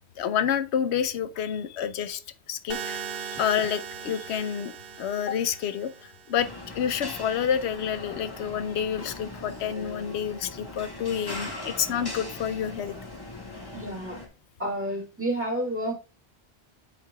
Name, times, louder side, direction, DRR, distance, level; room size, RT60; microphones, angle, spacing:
voice 1, 0.2-2.2 2.5-4.7 5.0-12.9, left 8 dB, 85° left, 0.9 m, -29 dB
sound 1, 2.7-6.7, right 7 dB, 65° right, 0.9 m, -39 dB
sound 2, 6.4-14.3, left 2 dB, 20° left, 1.7 m, -40 dB
voice 2, 13.7-14.2 14.6-15.9, right 1 dB, 10° right, 2.1 m, -30 dB
11.0 x 4.8 x 2.3 m
omnidirectional pair, 1.1 m